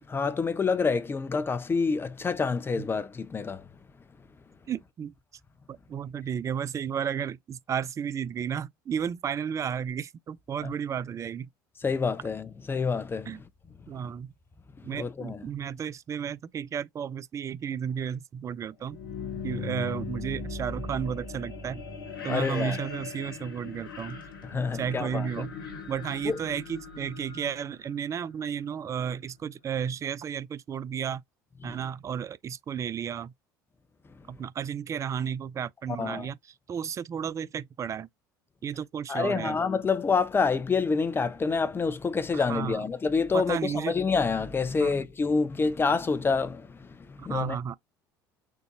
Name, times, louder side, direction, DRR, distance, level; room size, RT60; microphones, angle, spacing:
voice 1, 0.1-3.7 10.6-10.7 11.8-13.3 14.9-15.4 22.3-22.8 24.4-25.3 26.2-26.4 31.6-31.8 36.0-36.3 39.1-47.6, left 4 dB, 20° left, 0.6 m, -27 dB
voice 2, 4.7-5.1 5.7-11.5 13.3-13.4 13.9-14.3 14.8-19.0 19.4-21.8 22.2-24.2 24.7-25.5 25.9-31.2 31.6-33.3 34.3-38.1 38.6-39.6 42.3-42.8 43.3-44.0 44.8-44.9 47.2-47.8, right 8 dB, 25° right, 0.3 m, -33 dB
sound 1, 18.8-28.7, left 4 dB, 75° left, 1.0 m, -39 dB
3.7 x 2.5 x 2.7 m
figure-of-eight pair, 65°, 11 cm